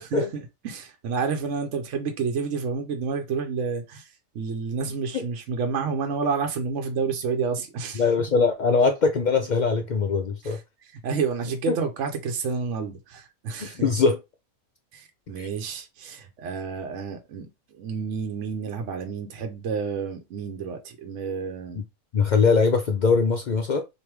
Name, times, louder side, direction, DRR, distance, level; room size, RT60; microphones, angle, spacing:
voice 1, 0.1-8.0 10.4-13.9 14.9-17.5 17.7-21.8, right 5 dB, 70° right, 1.0 m, -30 dB
voice 2, 8.0-10.6 11.7-11.8 13.6-14.2 15.4-15.5 22.1-23.8, left 4 dB, 75° left, 0.4 m, -22 dB
3.4 x 2.6 x 4.5 m
omnidirectional pair, 1.4 m